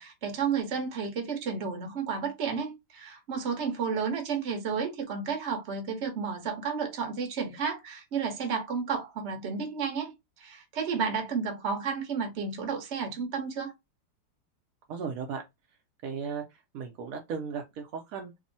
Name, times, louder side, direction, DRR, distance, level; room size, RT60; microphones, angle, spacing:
voice 1, 0.0-10.1 10.4-13.7, right 6 dB, 50° right, 0.8 m, -32 dB
voice 2, 14.9-15.4 16.0-18.3, right 6 dB, 80° right, 0.7 m, -36 dB
3.6 x 2.0 x 2.6 m
omnidirectional pair, 2.1 m